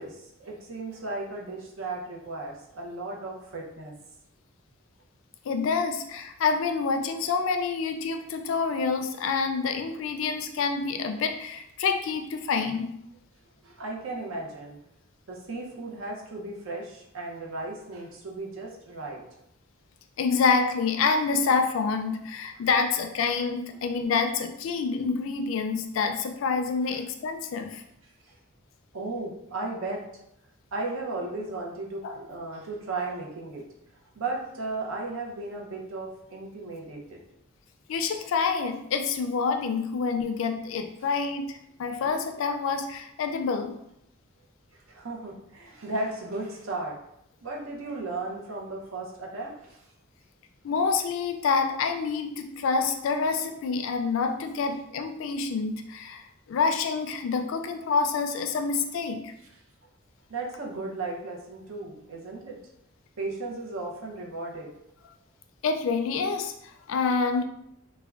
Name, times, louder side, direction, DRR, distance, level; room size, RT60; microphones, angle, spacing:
voice 1, 0.0-3.9 13.6-14.8 15.3-19.2 26.9-27.0 28.9-30.0 30.7-33.6 34.2-37.2 44.9-47.0 47.4-49.8 60.3-62.6 63.2-64.7, right 2 dB, 80° right, -1 dB, 0.6 m, -35 dB
voice 2, 5.5-12.9 20.2-27.8 32.0-32.2 37.9-43.8 50.6-59.3 65.6-67.4, left 5 dB, 65° left, 6 dB, 0.3 m, -27 dB
3.3 x 2.2 x 2.4 m, 0.79 s
head